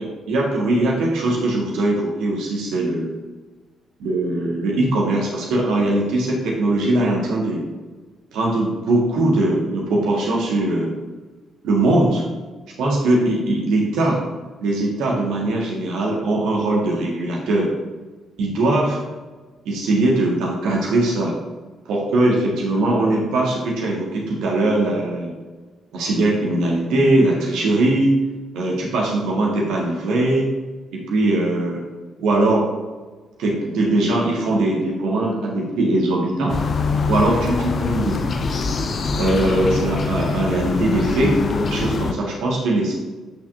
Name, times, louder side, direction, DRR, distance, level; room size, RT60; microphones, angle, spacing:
voice 1, 0.0-3.2 4.0-7.6 8.3-10.9 11.6-12.2 12.8-14.2 14.6-17.7 18.4-19.0 19.7-21.3 21.9-25.3 25.9-28.1 28.5-30.5 30.9-31.8 32.2-32.6 33.4-36.6 37.1-38.6 39.2-41.4 41.7-42.9, right 2 dB, 65° right, -2 dB, 1.8 m, -20 dB
sound 1, 36.5-42.1, left 4 dB, 45° left, 0.6 m, -23 dB
8.8 x 5.9 x 2.7 m, 1.3 s
figure-of-eight pair, 40°, 0 cm